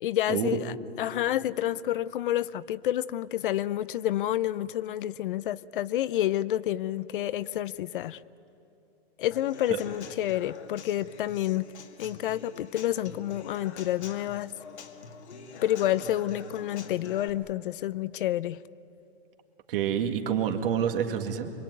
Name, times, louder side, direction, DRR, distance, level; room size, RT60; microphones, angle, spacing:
voice 1, 0.0-8.2 9.2-11.7 12.0-14.5 15.6-18.6, left 13 dB, 50° left, 17 dB, 0.6 m, -29 dB
Human voice / Acoustic guitar / Drum, 9.3-17.3, left 5 dB, 90° left, 2.1 m, -46 dB
voice 2, 19.7-21.5, right 8 dB, 55° right, 5 dB, 2.3 m, -27 dB
26.0 x 23.5 x 9.5 m, 2.8 s
hypercardioid pair, 150°, 33 cm